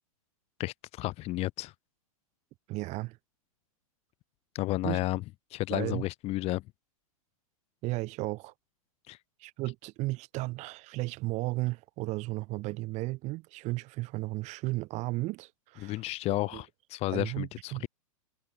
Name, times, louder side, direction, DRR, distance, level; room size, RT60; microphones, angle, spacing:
voice 1, 0.6-1.7 4.5-5.2 5.5-6.6 9.1-9.2 15.8-17.9, left 18 dB, 35° left, 1.0 m, -32 dB
voice 2, 2.7-3.2 4.8-5.0 5.7-6.0 7.8-8.5 9.4-16.0 16.3-16.6 17.1-17.9, right 21 dB, 40° right, 1.6 m, -34 dB
hypercardioid pair, 110°, 18 cm